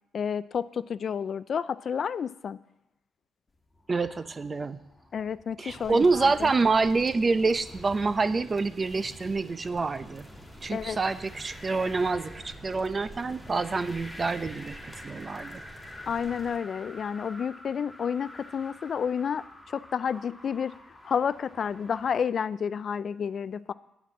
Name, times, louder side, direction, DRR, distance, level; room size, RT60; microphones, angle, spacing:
voice 1, 0.1-2.6 5.1-6.5 10.7-11.0 16.1-19.4 19.7-20.7 21.0-23.7, left 7 dB, 50° left, 17 dB, 0.4 m, -30 dB
sound 1, 3.7-22.2, left 1 dB, 15° left, 1.6 m, -49 dB
voice 2, 3.9-4.8 5.6-10.3 10.6-15.6, right 3 dB, 30° right, 13 dB, 0.6 m, -27 dB
sound 2, 5.7-16.6, right 1 dB, 5° right, 2.3 m, -48 dB
9.3 x 5.9 x 8.3 m, 0.88 s
cardioid pair, 90°, 0 cm